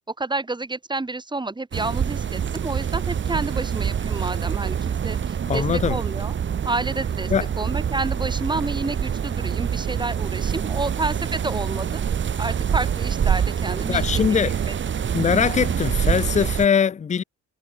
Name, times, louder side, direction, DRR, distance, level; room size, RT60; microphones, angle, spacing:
voice 1, 0.1-6.3 6.6-12.0 12.4-14.8, right 3 dB, 15° right, 1.9 m, -30 dB
sound 1, 1.7-16.7, right 8 dB, 40° right, 1.0 m, -25 dB
voice 2, 5.5-6.0 7.3-7.5 13.9-14.6 15.1-17.2, left 7 dB, 25° left, 0.5 m, -21 dB
cardioid pair, 90°, 30 cm